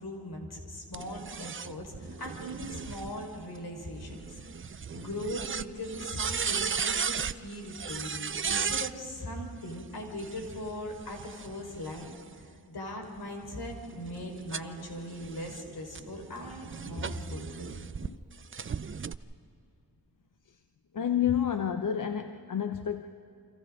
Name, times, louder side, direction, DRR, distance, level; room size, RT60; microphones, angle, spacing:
voice 1, 0.0-4.3 4.9-17.9, left 1 dB, 75° left, 1 dB, 4.3 m, -40 dB
sound 1, 0.9-8.9 10.1-12.4 13.0-18.1 18.5-19.1, right 6 dB, 35° right, 0.6 m, -36 dB
voice 2, 20.9-23.0, left 9 dB, 55° left, 7 dB, 0.9 m, -29 dB
29.5 x 25.5 x 3.7 m, 2.6 s
cardioid pair, 60°, 38 cm